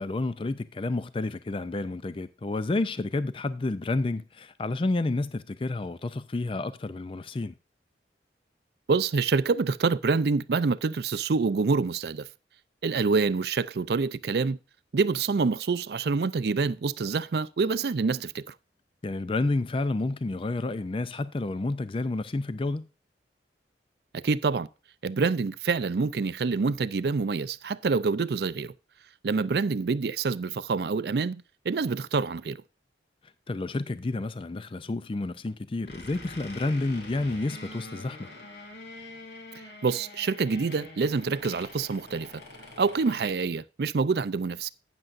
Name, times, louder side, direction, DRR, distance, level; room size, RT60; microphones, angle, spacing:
voice 1, 0.0-7.5 19.0-22.8 33.5-38.3, left 2 dB, 30° left, 0.4 m, -30 dB
voice 2, 8.9-12.3 12.8-14.6 14.9-18.5 24.1-24.7 25.0-28.7 29.2-32.6 39.8-42.4 42.8-44.7, right 4 dB, 60° right, 0.4 m, -26 dB
sound 1, 35.9-43.3, left 2 dB, 70° left, 2.9 m, -45 dB
12.0 x 9.0 x 2.5 m
head